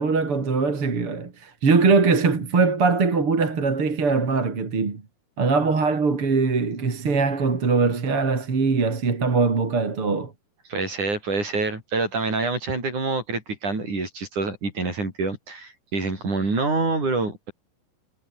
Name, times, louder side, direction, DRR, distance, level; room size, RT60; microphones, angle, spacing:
voice 1, 0.0-5.0 5.4-10.3, right 4 dB, 40° right, 4.4 m, -21 dB
voice 2, 10.7-17.5, right 3 dB, 60° right, 9.0 m, -26 dB
omnidirectional pair, 3.9 m